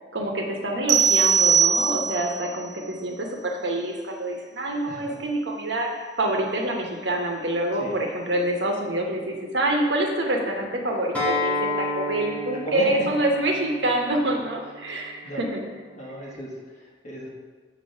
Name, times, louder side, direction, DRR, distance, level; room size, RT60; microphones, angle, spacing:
voice 1, 0.1-15.6, right 1 dB, 75° right, 0 dB, 1.0 m, -26 dB
sound 1, 0.9-2.4, right 7 dB, 40° right, 0.3 m, -20 dB
voice 2, 4.8-5.2 7.8-7.9 12.6-12.9 15.2-15.4 16.0-17.3, left 1 dB, 40° left, -3 dB, 1.3 m, -35 dB
Acoustic guitar, 11.1-16.3, left 2 dB, 10° left, 1.0 m, -31 dB
7.0 x 2.9 x 5.4 m, 1.4 s
head